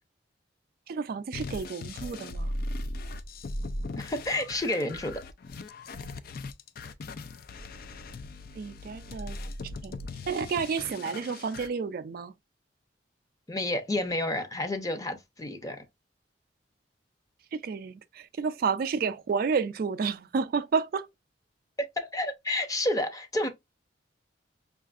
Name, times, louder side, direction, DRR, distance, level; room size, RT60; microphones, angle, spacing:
voice 1, 0.9-2.5 8.6-9.4 9.8-9.9 10.2-12.3 17.5-21.1, right 5 dB, 55° right, 0.3 m, -30 dB
sound 1, 1.3-11.7, left 2 dB, 55° left, 0.4 m, -38 dB
voice 2, 4.0-5.2 13.5-15.8 22.0-23.5, left 1 dB, 20° left, 0.7 m, -30 dB
5.5 x 2.5 x 2.4 m
head